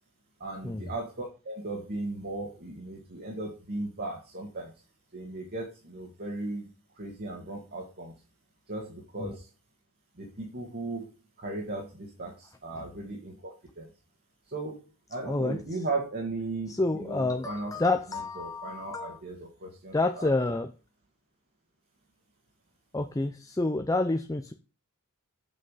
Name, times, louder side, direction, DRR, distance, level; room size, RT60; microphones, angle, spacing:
voice 1, 0.4-4.7 5.1-6.7 6.9-8.1 8.7-9.5 10.1-13.9 14.5-17.8 18.1-20.3, right 2 dB, 45° right, 0 dB, 2.0 m, -37 dB
voice 2, 15.3-15.6 16.7-19.2 19.9-20.7 22.9-24.5, left 2 dB, 15° left, 6 dB, 0.5 m, -28 dB
7.8 x 5.9 x 5.7 m, 0.34 s
head